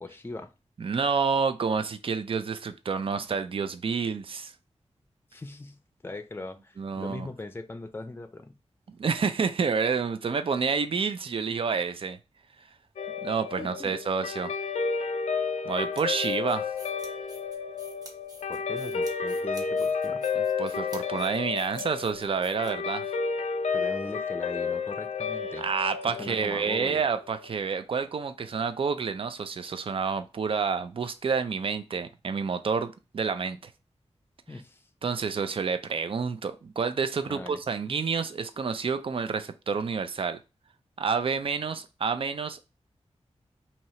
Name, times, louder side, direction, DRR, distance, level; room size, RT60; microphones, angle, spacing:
voice 1, 0.0-0.5 5.3-8.6 13.6-13.9 18.5-20.2 23.7-25.7 26.2-27.0 34.5-34.8 37.2-37.6, left 2 dB, 20° left, 0.5 m, -40 dB
voice 2, 0.8-4.5 6.8-7.3 8.9-12.2 13.2-14.5 15.6-16.7 20.4-23.1 25.6-33.7 35.0-40.4 41.0-42.7, right 5 dB, 55° right, 0.4 m, -29 dB
Guitar, 13.0-27.5, left 5 dB, 90° left, 0.5 m, -31 dB
sound 1, 15.7-23.1, right 1 dB, 35° right, 1.1 m, -50 dB
2.9 x 2.8 x 4.2 m
wide cardioid pair, 110°, 11 cm